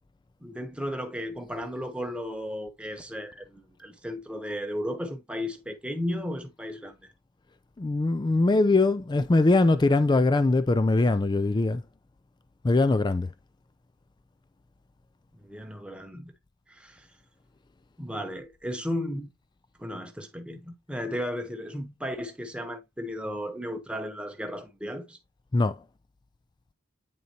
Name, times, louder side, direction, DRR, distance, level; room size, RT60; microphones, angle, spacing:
voice 1, 0.4-7.1 15.4-16.3 16.7-17.1 18.0-19.3 19.8-25.2, equal, 5° right, 0.9 m, -35 dB
voice 2, 7.8-11.8 12.6-13.3 25.5-25.7, left 2 dB, 20° left, 0.3 m, -22 dB
9.3 x 3.9 x 2.8 m
head